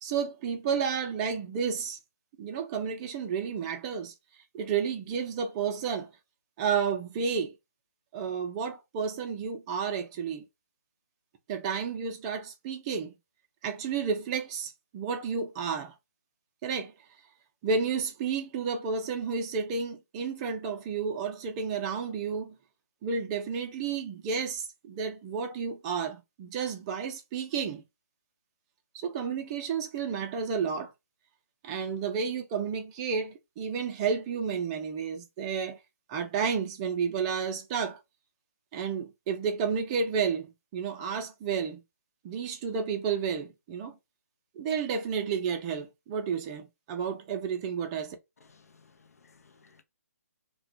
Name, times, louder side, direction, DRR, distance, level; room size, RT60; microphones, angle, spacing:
voice 1, 0.0-2.0 2.4-4.1 4.5-6.1 6.6-7.5 8.1-10.5 11.5-13.2 13.6-15.9 16.6-16.9 17.6-22.6 23.0-27.8 28.9-30.9 31.6-35.8 36.1-38.0 38.7-41.8 42.2-44.0 44.6-48.2, right 6 dB, 25° right, 0.5 m, -31 dB
voice 2, 48.4-49.8, left 5 dB, 70° left, 0.6 m, -60 dB
2.4 x 2.2 x 2.4 m
figure-of-eight pair, 140°, 9 cm